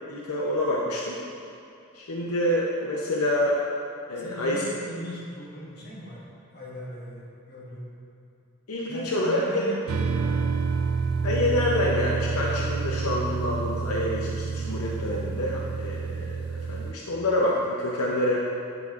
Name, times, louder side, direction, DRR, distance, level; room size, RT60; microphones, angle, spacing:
voice 1, 0.1-1.2 1.9-3.6 4.1-4.6 8.7-9.8 11.2-18.4, left 1 dB, 85° left, -3 dB, 0.7 m, -27 dB
voice 2, 4.1-6.2 6.5-7.9 8.9-10.6, equal, 45° left, -6 dB, 1.6 m, -39 dB
sound 1, 9.9-16.9, right 5 dB, 80° right, 0.4 m, -28 dB
9.9 x 6.0 x 2.4 m, 2.6 s
head